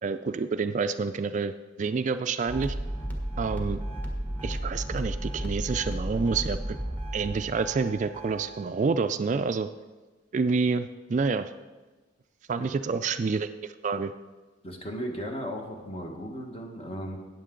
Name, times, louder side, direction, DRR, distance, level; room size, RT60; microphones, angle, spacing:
voice 1, 0.0-2.7 3.4-3.8 4.4-6.8 7.1-9.7 10.3-11.5 12.5-14.1, right 4 dB, 40° right, 10 dB, 0.3 m, -28 dB
sound 1, 2.5-8.7, right 1 dB, 10° left, 1.3 m, -33 dB
voice 2, 14.6-17.2, equal, 30° left, 2 dB, 1.4 m, -36 dB
13.5 x 9.3 x 3.8 m, 1.3 s
head